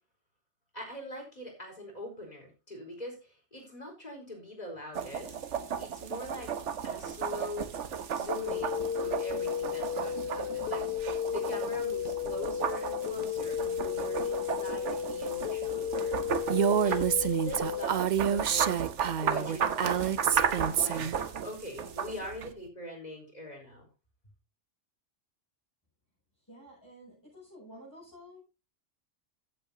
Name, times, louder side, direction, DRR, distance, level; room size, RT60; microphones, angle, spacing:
voice 1, 0.7-5.4 5.8-6.5 6.8-7.7 8.1-16.2 16.8-18.9 19.2-23.9, left 1 dB, 35° left, 2 dB, 4.5 m, -42 dB
sound 1, 4.9-22.5, right 7 dB, 80° right, 1.3 m, -35 dB
sound 2, 8.3-17.8, left 9 dB, 60° left, 0.9 m, -33 dB
Female speech woman speaking, 16.5-21.2, right 8 dB, 50° right, 0.6 m, -28 dB
voice 2, 26.5-28.4, equal, 15° left, -8 dB, 7.2 m, -51 dB
15.5 x 8.6 x 2.8 m, 0.30 s
omnidirectional pair, 1.2 m